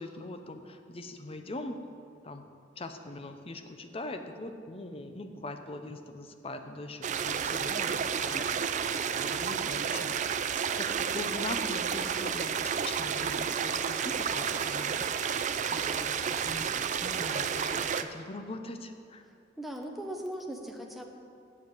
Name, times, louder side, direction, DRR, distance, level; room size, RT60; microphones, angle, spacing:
voice 1, 0.0-1.8 2.2-2.5 2.8-10.4 10.8-15.1 15.4-16.7 17.0-19.2, left 2 dB, 30° left, 7 dB, 0.6 m, -42 dB
sound 1, 7.0-18.0, right 7 dB, 40° right, 0.4 m, -31 dB
voice 2, 19.3-21.0, right 1 dB, ahead, 1 dB, 0.8 m, -39 dB
7.9 x 7.2 x 8.1 m, 2.4 s
head